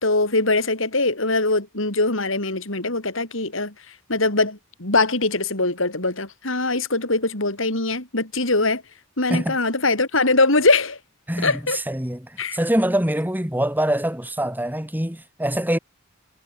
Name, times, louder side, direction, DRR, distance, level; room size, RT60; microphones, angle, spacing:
voice 1, 0.0-3.7 4.1-8.8 9.2-11.0 11.4-11.8 12.4-12.6, left 2 dB, 65° left, 5.1 m, -22 dB
voice 2, 11.3-15.8, right 1 dB, 10° right, 4.8 m, -24 dB
head